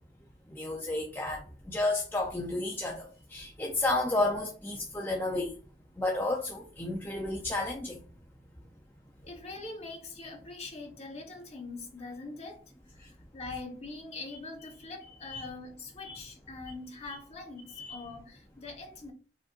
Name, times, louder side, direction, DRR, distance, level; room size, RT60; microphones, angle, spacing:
voice 1, 0.5-3.1 3.3-5.5 6.0-8.0 15.2-15.5 16.0-16.2 17.8-18.0, left 2 dB, 10° left, 0.6 m, -32 dB
voice 2, 9.2-12.6 12.9-19.1, left 3 dB, 35° left, 1.3 m, -43 dB
4.9 x 4.2 x 2.5 m
head